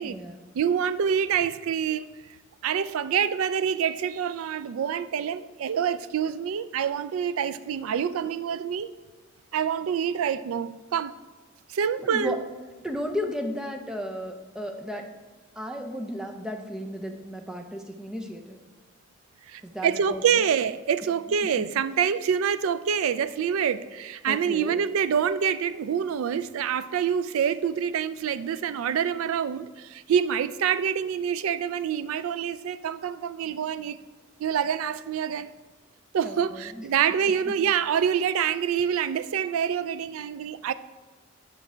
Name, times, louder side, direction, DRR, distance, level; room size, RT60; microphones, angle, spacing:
voice 1, 0.0-0.4 12.0-12.4 12.8-15.1 15.6-18.6 19.6-20.2 21.4-21.7 24.3-24.8 36.2-36.9, equal, 5° right, 0.5 m, -34 dB
voice 2, 0.5-2.1 2.6-8.9 9.5-11.1 11.7-12.4 19.5-34.0 34.4-35.5 36.1-40.7, right 8 dB, 85° right, 0.3 m, -26 dB
7.1 x 5.3 x 4.4 m
head